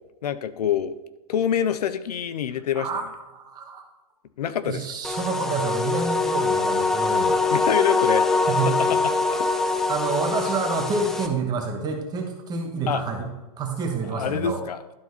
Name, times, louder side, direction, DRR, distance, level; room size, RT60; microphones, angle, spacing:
voice 1, 0.2-0.9 1.3-2.9 4.4-4.8 7.5-8.2 8.8-9.0 9.3-9.5 12.9-13.0 14.1-14.8, left 9 dB, 85° left, 13 dB, 0.7 m, -25 dB
voice 2, 3.3-3.8 4.6-7.4 8.5-9.0 9.9-13.3 13.6-14.6, right 4 dB, 20° right, 3 dB, 1.3 m, -28 dB
sound 1, 5.0-11.3, left 3 dB, ahead, 0.3 m, -23 dB
11.5 x 4.4 x 4.1 m, 1.1 s
hypercardioid pair, 145°, 19 cm